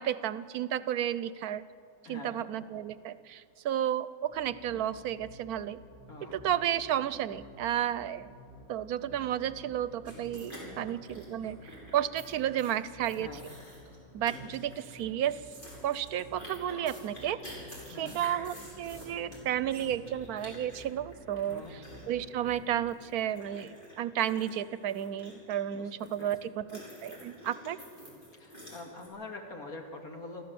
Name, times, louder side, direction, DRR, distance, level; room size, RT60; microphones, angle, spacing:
voice 1, 0.0-1.6 2.1-5.8 6.2-8.3 8.7-11.6 11.9-13.4 14.1-15.4 15.8-17.4 17.9-27.8, right 10 dB, 85° right, 16 dB, 1.2 m, -32 dB
voice 2, 2.0-2.5 6.1-6.4 10.6-10.9 13.1-13.4 17.9-18.2 21.5-21.8 25.7-26.5 28.3-30.4, left 2 dB, 75° left, 2 dB, 2.8 m, -45 dB
sound 1, 4.3-22.9, equal, 10° right, 2.1 m, -53 dB
sound 2, 10.1-12.2 12.6-12.7 13.0-14.0 14.3-15.0 15.3-26.4 26.7-29.1, equal, 35° left, 6.0 m, -49 dB
sound 3, 16.7-18.0 18.6-20.9 21.4-23.2, left 1 dB, 25° right, 5.0 m, -55 dB
27.5 x 14.5 x 7.8 m, 2.3 s
omnidirectional pair, 1.6 m